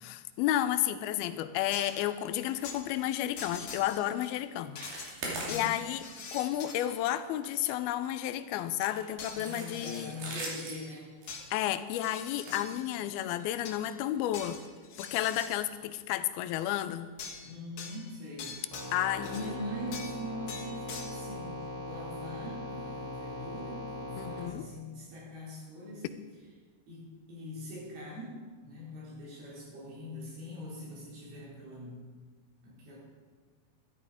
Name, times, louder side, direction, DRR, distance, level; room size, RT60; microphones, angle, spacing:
voice 1, 0.0-4.8 5.5-6.0 6.3-10.2 11.5-14.6 15.0-17.1 18.9-19.5 24.2-24.7, left 12 dB, 85° left, 12 dB, 2.5 m, -32 dB
sound 1, 1.7-2.1 2.6-2.8 3.4-4.3 4.8-7.0 9.2-10.0 11.3-11.5 11.9-12.9 13.4-13.9 14.3-15.6 17.2-17.5 17.8-19.5 19.9-20.2 20.5-21.1, left 5 dB, 60° left, 2.5 m, -44 dB
sound 2, 1.8-2.1 2.4-2.7 3.0-3.2 3.6-3.8 4.2-4.4 4.7-6.1 6.4-6.6 7.0-8.1 8.7-13.3 14.0-14.2 14.5-14.6 15.1-15.2, right 2 dB, 70° right, 4.3 m, -43 dB
voice 2, 5.2-5.8 9.3-11.1 17.4-18.6 19.2-26.1 26.9-32.0 32.6-33.0, left 1 dB, 85° right, -5 dB, 6.0 m, -43 dB
sound 3, 18.7-24.5, left 1 dB, 10° right, 2.7 m, -40 dB
12.5 x 12.5 x 4.9 m, 1.5 s
omnidirectional pair, 4.3 m